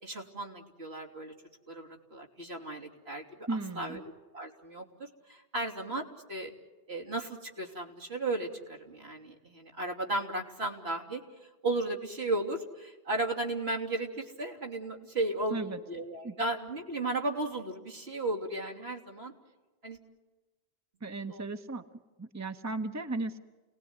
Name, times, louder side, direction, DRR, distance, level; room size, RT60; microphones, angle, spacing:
voice 1, 0.0-1.3 1.7-3.2 3.5-4.0 4.3-6.5 6.9-11.2 11.6-19.3 19.8-20.0 21.3-21.4, right 2 dB, 80° right, 1 dB, 3.5 m, -35 dB
voice 2, 3.5-4.0 15.5-15.8 16.2-16.3 21.0-21.8 22.2-23.4, right 3 dB, 15° right, 8 dB, 1.0 m, -35 dB
29.0 x 19.0 x 9.7 m, 1.3 s
omnidirectional pair, 1.1 m